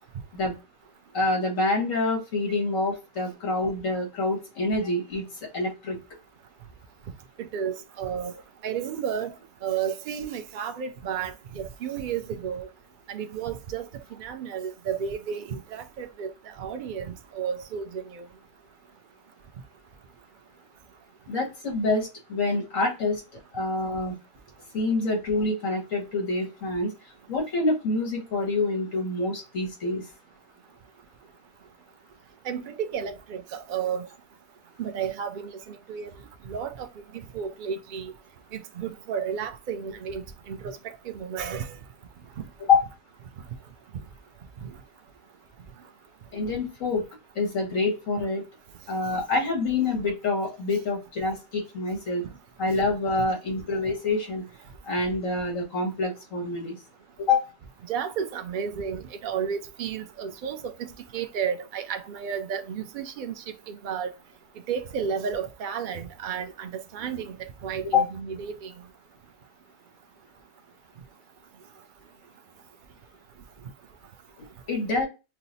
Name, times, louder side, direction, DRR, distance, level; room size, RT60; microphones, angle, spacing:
voice 1, 1.1-5.2 5.5-6.0 21.3-24.2 24.7-26.9 27.3-30.0 42.7-42.8 46.3-47.0 47.4-48.4 48.9-52.2 52.6-54.5 54.9-56.8 57.2-57.5 67.8-68.0 74.4-75.1, left 3 dB, 70° left, 1.9 m, -26 dB
voice 2, 7.4-9.4 9.6-12.7 13.1-13.9 14.2-18.3 32.4-34.1 34.8-36.1 36.5-38.1 38.5-41.7 42.4-42.5 44.6-44.7 57.9-64.1 64.7-68.7, right 7 dB, 85° right, 0.4 m, -32 dB
5.7 x 2.0 x 2.6 m
omnidirectional pair, 1.4 m